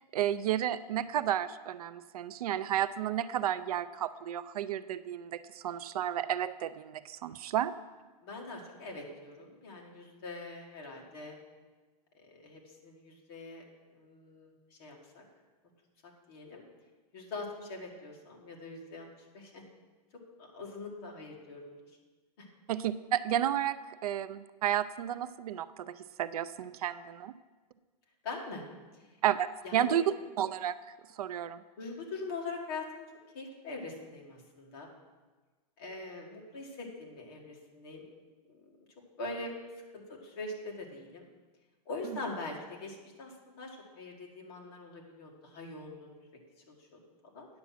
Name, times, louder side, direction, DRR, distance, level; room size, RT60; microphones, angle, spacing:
voice 1, 0.1-7.7 22.7-27.3 29.2-29.5 29.7-30.1 30.4-30.8 31.2-31.6, right 11 dB, 65° right, 14 dB, 0.4 m, -32 dB
voice 2, 8.2-11.4 12.1-13.6 14.0-15.2 16.3-16.6 17.1-19.1 19.3-19.6 20.4-21.8 22.4-22.5 28.2-28.7 28.9-29.0 29.6-30.0 31.8-33.1 33.3-34.9 35.8-38.0 39.2-39.5 39.9-41.3 41.9-46.2 46.7-47.5, left 3 dB, 35° left, -1 dB, 1.7 m, -43 dB
9.6 x 7.1 x 5.7 m, 1.3 s
supercardioid pair, 180°, 21 cm